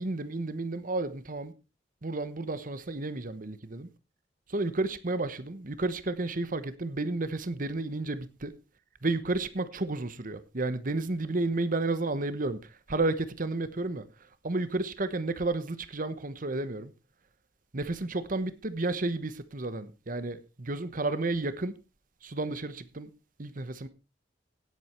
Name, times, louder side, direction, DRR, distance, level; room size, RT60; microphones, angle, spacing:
voice 1, 0.0-1.5 2.0-3.9 4.5-8.5 9.0-12.6 12.9-14.1 14.4-16.9 17.7-21.8 22.2-23.1 23.4-23.9, right 2 dB, 50° right, 1.1 m, -32 dB
17.5 x 8.3 x 4.5 m
head